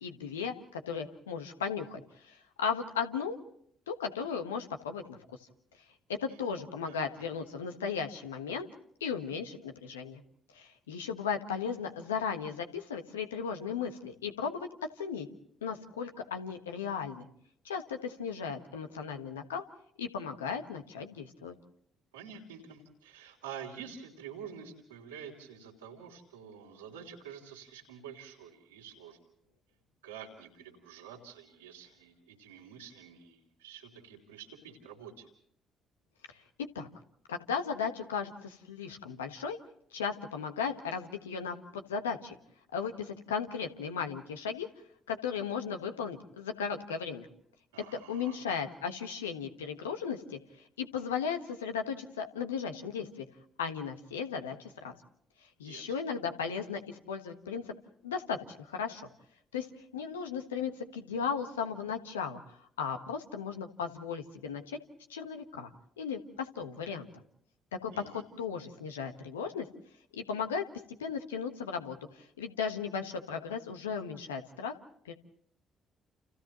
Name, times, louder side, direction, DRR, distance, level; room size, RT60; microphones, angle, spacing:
voice 1, 0.0-3.4 3.9-5.2 6.1-8.7 9.0-10.2 10.5-14.7 15.0-15.3 15.6-17.3 17.6-19.6 20.0-21.5 36.3-36.4 36.7-36.9 37.3-39.6 39.9-42.4 42.7-44.7 45.1-47.3 47.9-50.4 50.8-53.3 53.6-54.9 55.6-57.7 58.0-59.1 59.5-59.7 59.9-62.4 62.8-64.8 65.1-65.7 66.0-67.1 67.8-69.7 70.1-74.8 75.0-75.1, left 6 dB, 85° left, 5 dB, 1.4 m, -36 dB
voice 2, 6.8-7.2 22.1-29.2 30.0-35.3 47.7-48.4 55.6-55.9 67.9-68.2, right 7 dB, 85° right, -1 dB, 3.3 m, -48 dB
29.5 x 29.0 x 3.1 m, 0.66 s
hypercardioid pair, 45°, 0 cm